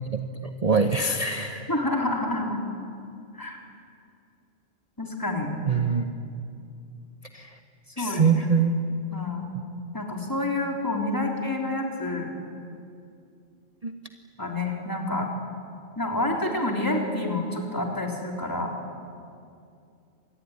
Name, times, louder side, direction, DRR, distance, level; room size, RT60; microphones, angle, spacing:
voice 1, 0.6-1.7 5.7-6.1 7.3-7.5 8.0-8.8 13.8-13.9, right 5 dB, 35° right, 7 dB, 1.0 m, -23 dB
voice 2, 1.7-2.6 3.3-3.6 5.0-5.5 8.0-8.5 9.1-9.5 9.9-12.3 14.4-15.3 16.0-18.8, left 2 dB, 15° left, 1 dB, 3.6 m, -28 dB
26.0 x 20.5 x 9.6 m, 2.5 s
omnidirectional pair, 1.2 m